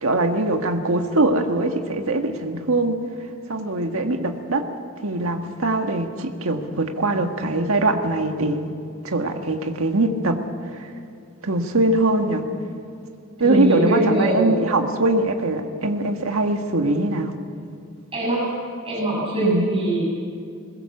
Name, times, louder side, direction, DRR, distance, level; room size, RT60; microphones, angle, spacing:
voice 1, 0.0-3.0 3.5-4.7 5.0-8.7 9.0-10.4 11.4-12.4 13.4-17.3 19.4-19.7, right 2 dB, 65° right, 4 dB, 1.7 m, -22 dB
voice 2, 13.4-14.7 18.1-18.5 18.8-20.0, right 1 dB, 25° right, -5 dB, 7.2 m, -22 dB
21.5 x 21.0 x 7.3 m, 2.4 s
head